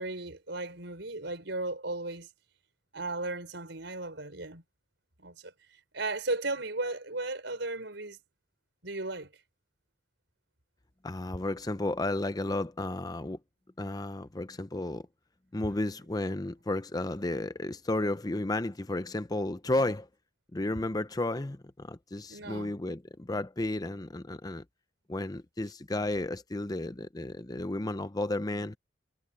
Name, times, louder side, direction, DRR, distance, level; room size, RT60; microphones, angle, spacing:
voice 1, 0.0-2.3 2.9-4.6 5.2-5.5 5.9-8.2 8.8-9.3 22.3-22.7, right 2 dB, 70° right, 5.1 m, -35 dB
voice 2, 11.0-13.4 13.8-15.1 15.5-20.1 20.5-24.6 25.1-28.8, left 2 dB, 20° left, 0.7 m, -33 dB
head